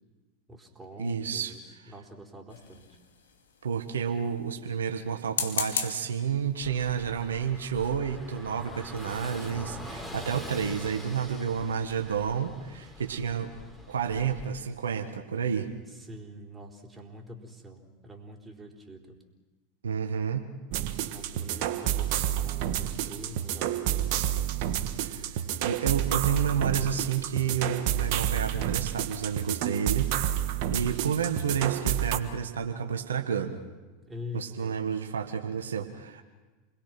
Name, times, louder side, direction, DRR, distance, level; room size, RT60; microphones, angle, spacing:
voice 1, 0.5-3.0 15.9-19.2 21.1-24.4 34.0-34.8, left 1 dB, 15° right, 0 dB, 4.2 m, -45 dB
voice 2, 1.0-1.5 3.6-13.5 13.9-15.7 19.8-20.4 25.0-30.1 30.7-33.6 34.3-36.2, right 7 dB, 80° right, 5 dB, 1.5 m, -30 dB
sound 1, 2.5-3.3 5.2-6.1 6.8-7.0 7.4-7.5 7.7-8.0, left 6 dB, 80° left, 2.4 m, -34 dB
Car passing by / Engine, 6.6-14.5, left 1 dB, 5° left, 4.0 m, -44 dB
sound 2, 20.7-32.2, right 11 dB, 60° right, 1.5 m, -29 dB
28.5 x 21.5 x 6.1 m, 1.3 s
hypercardioid pair, 90°, 0 cm